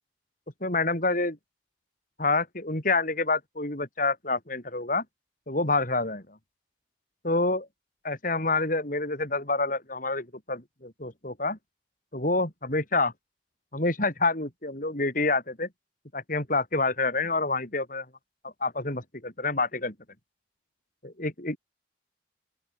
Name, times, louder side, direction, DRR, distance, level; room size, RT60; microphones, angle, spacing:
voice 1, 0.6-1.4 2.2-5.0 5.5-6.4 7.2-7.7 8.0-11.6 12.1-13.1 13.7-15.7 16.1-18.1 18.4-19.9 21.0-21.6, left 3 dB, 45° left, 5.3 m, -27 dB
open air
head